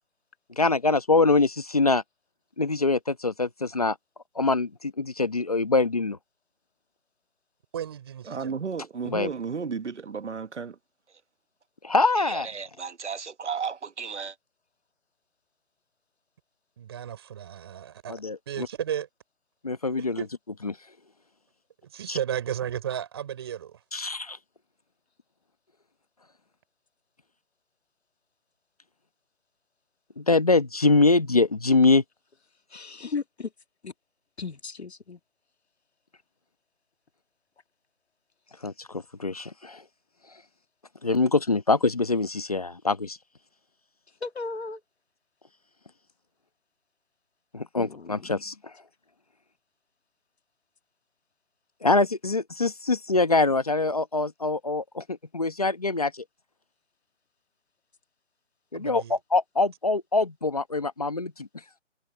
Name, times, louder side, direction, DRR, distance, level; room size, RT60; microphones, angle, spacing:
voice 1, 0.6-2.0 2.6-4.0 4.3-6.2 9.0-9.3 11.8-12.5 18.1-18.7 19.6-20.2 20.6-20.8 22.1-22.2 23.9-24.4 30.2-32.0 38.6-39.8 41.0-43.2 47.5-48.7 51.8-56.2 58.7-61.5, left 3 dB, 30° left, 1.1 m, -24 dB
voice 2, 7.7-8.5 16.8-18.2 18.5-19.1 20.2-20.3 21.9-23.8 58.7-59.2, right 9 dB, 20° right, 5.6 m, -33 dB
voice 3, 8.3-10.7 12.3-14.3, right 5 dB, 60° right, 1.2 m, -33 dB
voice 4, 32.7-33.5 33.8-33.9 34.4-35.2 44.2-44.8 47.8-48.4, left 4 dB, 55° left, 2.0 m, -35 dB
hypercardioid pair, 175°, 38 cm